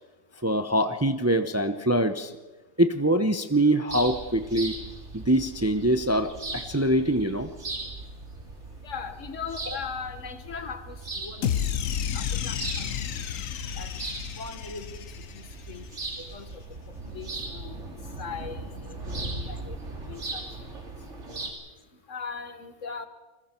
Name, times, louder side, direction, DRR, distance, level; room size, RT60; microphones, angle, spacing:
voice 1, 0.4-2.3 2.8-4.8 5.1-7.5, right 1 dB, 15° right, 9 dB, 0.7 m, -24 dB
sound 1, 3.9-21.5, right 2 dB, 65° right, 3.0 m, -39 dB
voice 2, 8.8-11.7 12.1-12.9 13.8-13.9 14.4-15.0 15.3-15.8 16.3-16.5 17.1-17.7 18.2-18.7 19.1-19.7 20.1-20.4 21.3-21.4 22.1-23.1, left 5 dB, 70° left, 9 dB, 1.7 m, -39 dB
sound 2, 11.4-15.8, left 9 dB, 85° left, 1.3 m, -31 dB
29.0 x 20.5 x 4.5 m, 1.2 s
omnidirectional pair, 1.3 m